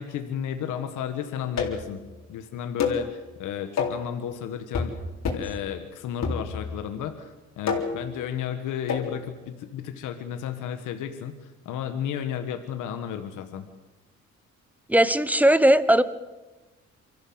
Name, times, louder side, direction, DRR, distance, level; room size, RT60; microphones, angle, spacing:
voice 1, 0.0-2.0 2.3-4.9 5.3-13.6, left 9 dB, 85° left, 7 dB, 1.6 m, -33 dB
sound 1, 1.6-1.9 2.8-3.1 3.8-4.1 4.7-5.0 5.3-5.6 6.2-6.8 7.7-8.1 8.9-9.1, left 5 dB, 60° left, 3.9 m, -28 dB
voice 2, 14.9-16.0, right 1 dB, 5° right, 14 dB, 1.1 m, -18 dB
24.5 x 14.5 x 8.0 m, 1.2 s
cardioid pair, 90°, 30 cm